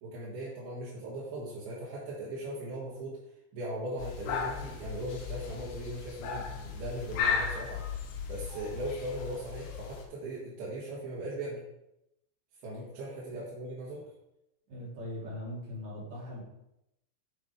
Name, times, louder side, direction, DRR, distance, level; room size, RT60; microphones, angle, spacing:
voice 1, 0.0-3.2 3.5-7.8 8.3-11.6 12.6-14.0, right 1 dB, 55° right, -8 dB, 3.2 m, -39 dB
sound 1, 4.0-10.1, left 6 dB, 80° left, 3.8 m, -36 dB
voice 2, 14.7-16.4, left 1 dB, 40° right, -6 dB, 3.0 m, -40 dB
9.0 x 7.5 x 3.4 m, 0.86 s
omnidirectional pair, 5.9 m